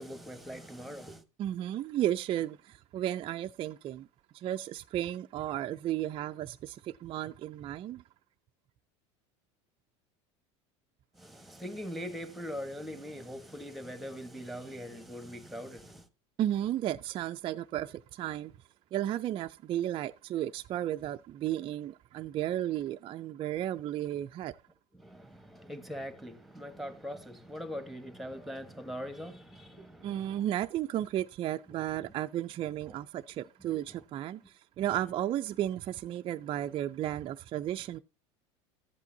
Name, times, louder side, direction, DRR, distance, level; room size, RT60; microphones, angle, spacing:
voice 1, 0.0-1.2 11.1-16.1 24.9-30.4 31.7-31.8 33.6-34.0, equal, ahead, 1.2 m, -42 dB
voice 2, 1.4-4.1 4.3-8.0 16.4-18.5 18.9-24.6 30.0-38.0, right 12 dB, 35° right, 0.4 m, -34 dB
14.0 x 8.1 x 2.7 m
supercardioid pair, 110°, 15 cm